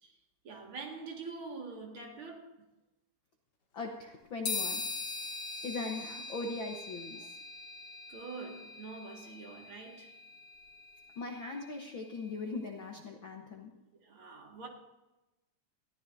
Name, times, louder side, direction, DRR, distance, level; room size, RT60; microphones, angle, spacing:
voice 1, 0.4-2.5 8.1-10.1 14.0-14.7, right 4 dB, 45° right, 2.4 m, -45 dB
voice 2, 3.7-4.8 5.6-7.4 11.2-13.7, left 3 dB, 65° left, 1.2 m, -40 dB
sound 1, 4.5-12.1, left 4 dB, 45° left, 2.8 m, -42 dB
21.5 x 14.5 x 2.7 m
omnidirectional pair, 3.8 m